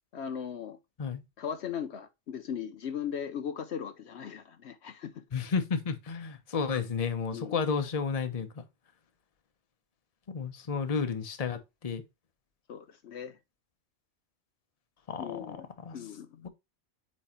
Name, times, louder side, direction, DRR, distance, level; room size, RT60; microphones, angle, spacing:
voice 1, 0.1-0.8 1.4-5.2 7.3-7.6 12.7-13.4 15.2-16.5, left 8 dB, 70° left, 0.9 m, -38 dB
voice 2, 5.3-8.6 10.3-12.0 15.1-15.6 15.9-16.0, left 5 dB, 35° left, 0.9 m, -32 dB
8.6 x 3.1 x 4.3 m
omnidirectional pair, 1.2 m